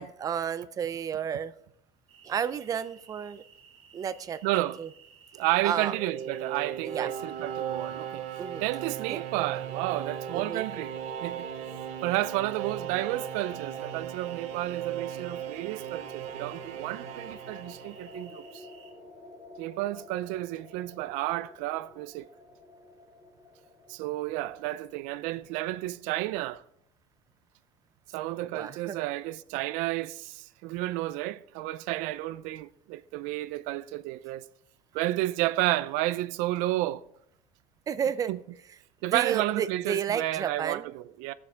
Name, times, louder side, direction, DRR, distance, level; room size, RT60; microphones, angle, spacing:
voice 1, 0.0-1.5 2.2-3.4 3.9-4.9 5.6-5.9 6.8-7.1 8.4-8.6 9.1-9.2 10.3-10.7 28.5-29.0 37.9-38.4 39.1-40.9, right 8 dB, 30° right, 0.5 m, -32 dB
sound 1, 2.1-18.9, right 6 dB, 50° right, 2.1 m, -56 dB
voice 2, 4.4-4.8 5.3-8.2 8.6-10.9 11.2-11.5 12.0-18.6 19.6-22.3 23.9-26.6 28.1-34.5 34.9-37.0 38.3-38.4 39.0-41.3, right 16 dB, 90° right, 0.5 m, -31 dB
sound 2, 5.4-18.4, right 9 dB, 65° right, 0.9 m, -37 dB
sound 3, 8.9-25.8, left 2 dB, 15° left, 4.0 m, -50 dB
18.0 x 7.1 x 3.5 m
cardioid pair, 160°, 13 cm